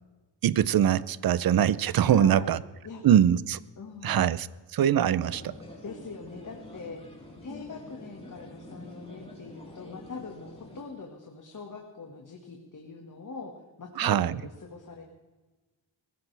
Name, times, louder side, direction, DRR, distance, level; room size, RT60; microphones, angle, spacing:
voice 1, 0.4-2.6 3.0-3.6 4.0-5.5 14.0-14.4, right 10 dB, 55° right, 18 dB, 0.6 m, -23 dB
voice 2, 2.0-2.6 2.8-3.0 3.8-4.4 5.8-7.0 7.4-13.5 13.8-15.0, left 4 dB, 45° left, 1 dB, 1.8 m, -42 dB
sound 1, 5.2-10.8, left 2 dB, 15° left, 3.8 m, -47 dB
21.5 x 15.5 x 3.4 m, 1.2 s
wide cardioid pair, 115°, 45 cm